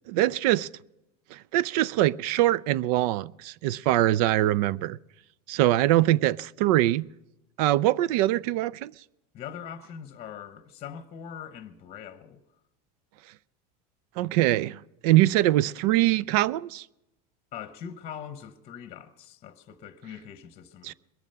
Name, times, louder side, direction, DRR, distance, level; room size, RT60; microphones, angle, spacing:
voice 1, 0.1-0.7 1.3-5.0 5.5-7.0 7.6-8.9 14.2-16.8 20.8-20.9, right 15 dB, 70° right, 0.4 m, -23 dB
voice 2, 9.3-12.4 17.5-20.9, left 8 dB, 30° left, 0.9 m, -42 dB
21.5 x 7.4 x 5.6 m
supercardioid pair, 150°, 20 cm